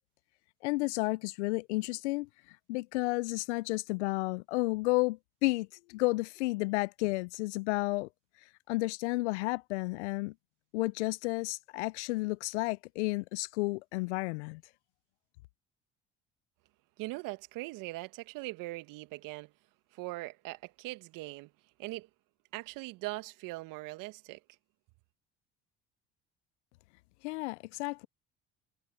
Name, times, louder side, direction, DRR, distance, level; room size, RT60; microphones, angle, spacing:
voice 1, 0.6-2.3 2.7-8.1 8.7-10.3 10.7-14.6 27.2-28.1, left 23 dB, 80° left, 0.7 m, -32 dB
voice 2, 17.0-19.5 19.9-21.5 21.8-22.1 22.5-24.4, right 21 dB, 70° right, 2.0 m, -41 dB
hypercardioid pair, 60°, 34 cm